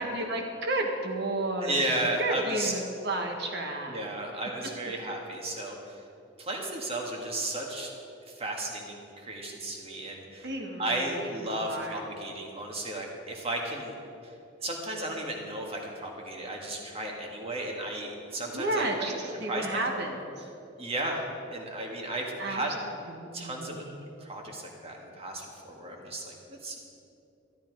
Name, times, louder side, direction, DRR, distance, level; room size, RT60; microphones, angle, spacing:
voice 1, 0.0-4.1 10.4-12.0 18.5-20.2 22.4-22.6 23.1-24.0, right 1 dB, 55° right, 3 dB, 1.6 m, -32 dB
voice 2, 1.6-2.7 3.9-6.0 6.4-7.9 8.3-10.5 10.8-13.9 14.2-14.3 14.6-19.2 19.5-20.1 20.8-22.8 23.3-23.8 24.2-26.8, right 1 dB, 30° right, 0 dB, 1.8 m, -34 dB
13.0 x 12.5 x 4.7 m, 2.7 s
head